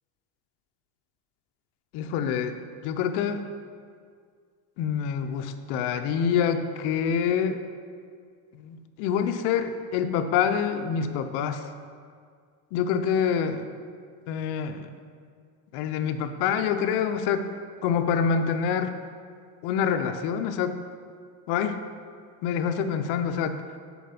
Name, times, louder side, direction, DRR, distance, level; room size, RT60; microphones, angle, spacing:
voice 1, 1.9-2.6 2.8-3.4 4.8-7.6 8.6-11.6 12.7-13.7 14.3-14.9 15.7-17.5 17.8-18.9 19.6-20.8 21.5-21.8 22.4-23.6, left 7 dB, 60° left, 8 dB, 0.6 m, -26 dB
7.0 x 4.3 x 5.8 m, 2.1 s
cardioid pair, 140°, 45 cm